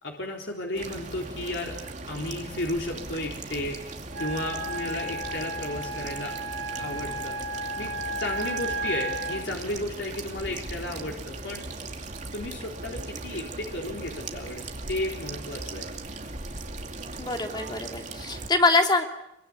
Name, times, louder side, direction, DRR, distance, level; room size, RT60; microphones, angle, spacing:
voice 1, 0.0-1.8 2.1-3.8 4.2-6.3 6.8-7.4 7.8-11.6 12.3-15.9, left 1 dB, 85° left, 0 dB, 3.9 m, -33 dB
sound 1, 0.7-18.5, right 2 dB, 45° right, 2.6 m, -38 dB
Wind instrument woodwind instrument, 4.1-9.5, right 2 dB, 80° right, 1.2 m, -33 dB
voice 2, 17.2-19.1, left 3 dB, 25° left, 3 dB, 2.7 m, -24 dB
27.0 x 24.5 x 8.7 m, 0.86 s
head